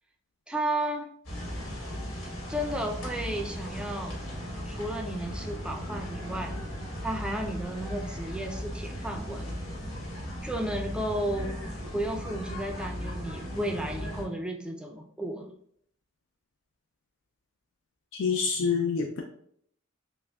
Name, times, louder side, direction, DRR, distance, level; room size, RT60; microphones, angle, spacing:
voice 1, 0.5-1.1 2.5-4.2 4.7-6.5 7.0-9.6 10.4-11.6 11.9-15.5, right 1 dB, 5° right, 2 dB, 0.4 m, -33 dB
sound 1, 1.2-14.2, equal, 85° left, 1.4 m, -37 dB
voice 2, 18.1-19.2, left 5 dB, 65° left, 3 dB, 0.4 m, -27 dB
5.8 x 2.1 x 2.3 m, 0.66 s
head